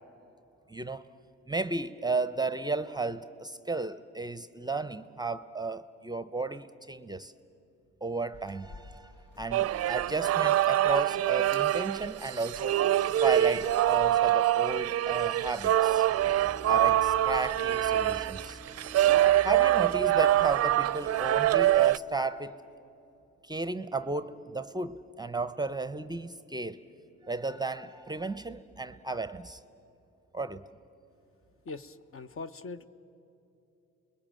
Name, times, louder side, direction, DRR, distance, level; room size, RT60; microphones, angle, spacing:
voice 1, 0.7-1.1 1.5-7.3 8.0-12.8 13.2-16.0 16.7-18.6 19.4-22.6 23.4-26.8 27.2-29.6 30.3-30.6, right 3 dB, 15° right, 0.6 m, -33 dB
sound 1, 8.3-21.9, left 2 dB, 85° left, 2.0 m, -54 dB
sound 2, 9.5-22.0, right 13 dB, 55° right, 0.5 m, -25 dB
sound 3, 16.0-21.8, equal, 10° left, 2.0 m, -48 dB
voice 2, 31.7-32.9, left 3 dB, 45° left, 0.9 m, -41 dB
30.0 x 21.5 x 7.6 m
cardioid pair, 90°, 30 cm